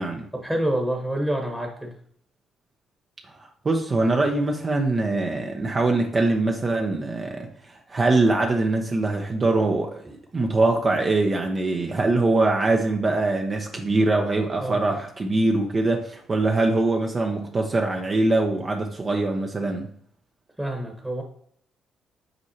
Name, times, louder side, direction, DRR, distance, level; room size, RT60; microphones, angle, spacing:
voice 1, 0.3-1.9 14.6-14.9 20.6-21.2, right 1 dB, 10° right, 1 dB, 1.3 m, -27 dB
voice 2, 3.4-19.9, right 2 dB, 35° right, 2 dB, 0.8 m, -23 dB
7.8 x 4.6 x 2.8 m, 0.63 s
cardioid pair, 90°, 0 cm